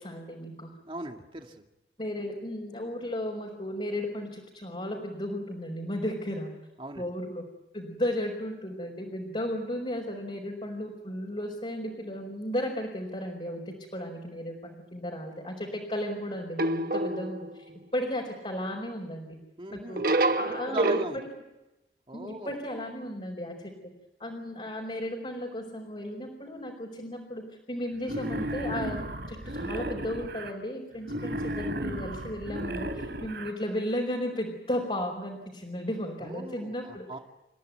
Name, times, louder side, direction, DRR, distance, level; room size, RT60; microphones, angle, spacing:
voice 1, 0.0-0.7 2.0-6.5 7.0-7.4 7.7-17.7 17.9-19.4 19.7-21.3 22.1-23.7 24.2-29.0 29.3-37.1, left 1 dB, 35° left, -1 dB, 4.5 m, -34 dB
voice 2, 0.9-1.6 6.8-7.1 19.6-20.0 20.4-21.2 22.1-22.6 36.2-37.2, right 1 dB, 30° right, 4 dB, 2.2 m, -38 dB
sound 1, 16.6-17.6 20.0-21.1, right 2 dB, 55° right, 1.2 m, -27 dB
Wild animals, 28.0-30.5 31.0-33.5, right 1 dB, 70° right, 2.8 m, -34 dB
29.5 x 15.0 x 9.5 m, 0.98 s
head